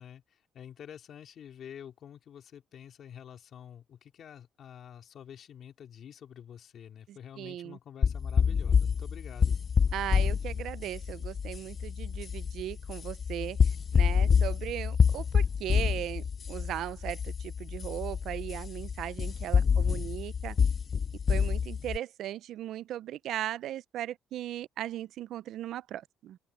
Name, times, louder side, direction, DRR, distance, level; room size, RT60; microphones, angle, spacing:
voice 1, 0.0-9.6 19.6-20.2, left 9 dB, 55° left, 3.4 m, -48 dB
voice 2, 7.1-7.8 9.9-20.6 21.3-26.4, right 12 dB, 70° right, 0.5 m, -38 dB
sound 1, 8.0-22.0, left 6 dB, 35° left, 0.3 m, -27 dB
open air
cardioid pair, 125°, 0 cm